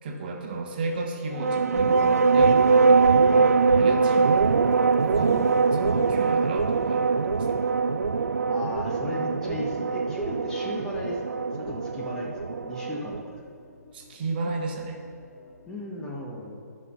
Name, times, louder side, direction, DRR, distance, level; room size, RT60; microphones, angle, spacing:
voice 1, 0.0-2.6 2.9-4.5 5.0-7.2 7.5-7.6 13.9-15.0, right 3 dB, 35° right, 1 dB, 1.2 m, -33 dB
sound 1, 0.8-16.1, left 2 dB, 60° left, 2.7 m, -53 dB
sound 2, 1.3-13.2, right 4 dB, 60° right, 0.4 m, -22 dB
voice 2, 8.5-13.4 15.7-16.6, left 1 dB, 5° left, -3 dB, 1.1 m, -36 dB
13.0 x 5.6 x 5.7 m, 2.4 s
figure-of-eight pair, 135°, 9 cm